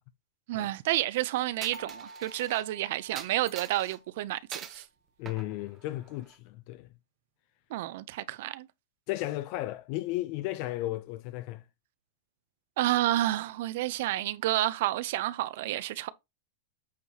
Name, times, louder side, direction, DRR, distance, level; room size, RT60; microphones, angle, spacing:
voice 1, 0.5-4.8 7.7-8.7 12.8-16.1, right 15 dB, 60° right, 0.6 m, -30 dB
Coin (dropping), 1.6-2.6 3.2-4.0 4.5-4.9 5.3-6.3, right 8 dB, 20° right, 1.0 m, -44 dB
sound 1, 1.7-4.5, right 2 dB, 80° right, 2.2 m, -51 dB
voice 2, 5.2-6.9 9.1-11.6, left 16 dB, 45° left, 0.5 m, -34 dB
8.4 x 4.6 x 2.9 m
supercardioid pair, 155°, 0 cm